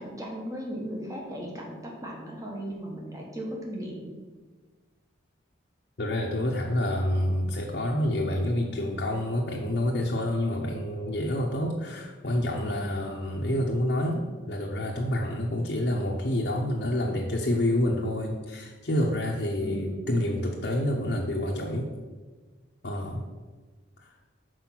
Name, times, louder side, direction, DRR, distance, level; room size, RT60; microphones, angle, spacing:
voice 1, 0.0-4.1 19.6-20.0, right 1 dB, 15° right, -1 dB, 1.2 m, -36 dB
voice 2, 6.0-21.9 22.8-23.2 24.0-24.1, left 1 dB, 55° left, -2 dB, 0.8 m, -28 dB
6.1 x 4.8 x 5.9 m, 1.4 s
head